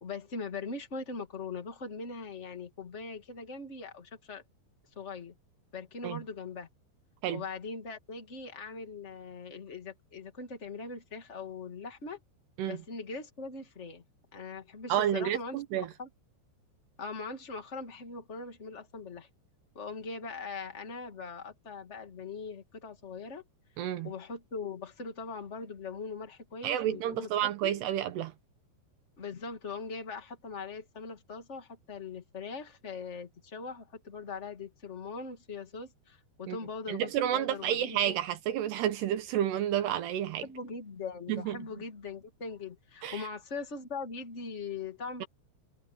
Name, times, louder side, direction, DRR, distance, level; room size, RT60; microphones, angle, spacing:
voice 1, 0.0-4.4 4.9-5.3 5.7-6.7 7.3-12.2 12.7-14.0 14.3-15.6 16.0-16.1 17.0-19.3 19.7-23.4 24.0-27.7 29.2-38.2 40.4-45.2, left 4 dB, 30° left, 1.3 m, -41 dB
voice 2, 14.9-15.9 23.8-24.1 26.6-28.3 36.5-36.6 36.9-40.4 41.3-41.6 43.0-43.2, right 11 dB, 70° right, 2.9 m, -30 dB
omnidirectional pair, 5.4 m